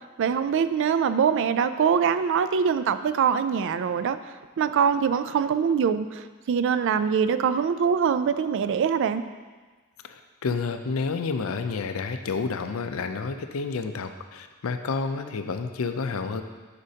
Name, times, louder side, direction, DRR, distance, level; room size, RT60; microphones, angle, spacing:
voice 1, 0.2-4.2 4.6-9.2, right 7 dB, 60° right, 12 dB, 0.3 m, -23 dB
voice 2, 10.0-16.4, left 4 dB, 75° left, 8 dB, 0.5 m, -30 dB
9.6 x 5.0 x 2.8 m, 1.4 s
head